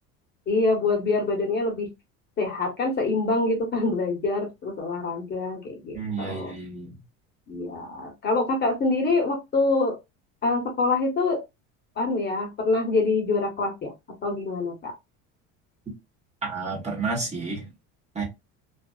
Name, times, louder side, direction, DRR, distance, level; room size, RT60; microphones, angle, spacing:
voice 1, 0.5-1.9 2.4-6.5 7.5-10.0 10.4-11.4 12.0-13.9 14.2-14.9, left 3 dB, 30° left, 0.9 m, -25 dB
voice 2, 5.9-6.9 16.4-17.6 18.1-18.2, right 4 dB, 20° right, 0.9 m, -30 dB
2.4 x 2.3 x 2.2 m
supercardioid pair, 120°, 33 cm